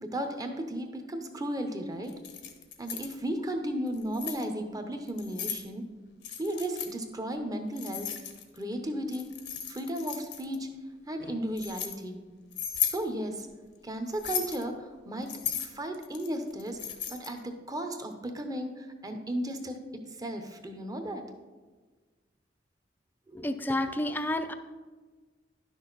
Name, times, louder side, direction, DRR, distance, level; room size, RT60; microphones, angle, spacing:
voice 1, 0.0-2.1 2.8-5.8 6.4-8.1 8.5-9.3 9.7-10.7 11.1-12.2 12.8-13.5 13.8-15.3 15.6-16.8 17.1-19.8 20.2-21.2, right 1 dB, 20° right, 6 dB, 0.8 m, -34 dB
Keys jangling, 2.1-3.2 3.9-4.4 5.1-5.6 6.2-6.9 7.8-8.6 9.1-10.6 11.2-11.9 12.5-13.0 14.1-14.6 15.3-17.4, left 9 dB, 85° left, 1.0 m, -35 dB
voice 2, 23.4-24.5, left 1 dB, 10° left, 8 dB, 0.4 m, -30 dB
10.5 x 6.3 x 4.0 m, 1.4 s
head